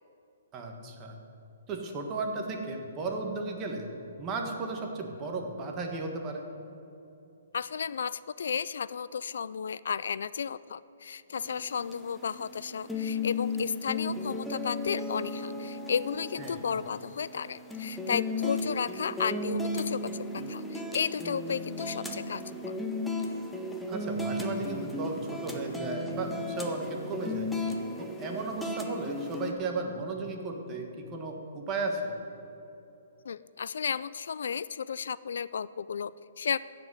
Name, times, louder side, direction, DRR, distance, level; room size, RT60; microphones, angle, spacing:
voice 1, 0.5-1.2 1.7-3.9 4.2-6.4 16.4-16.6 23.9-27.5 28.0-32.1, right 3 dB, 20° right, 2 dB, 1.4 m, -35 dB
voice 2, 7.5-22.8 33.2-36.1 36.4-36.6, left 6 dB, 75° left, 18 dB, 0.3 m, -33 dB
sound 1, 11.4-29.5, left 2 dB, 5° left, 0.8 m, -35 dB
15.0 x 5.1 x 9.5 m, 2.9 s
hypercardioid pair, 165°, 0 cm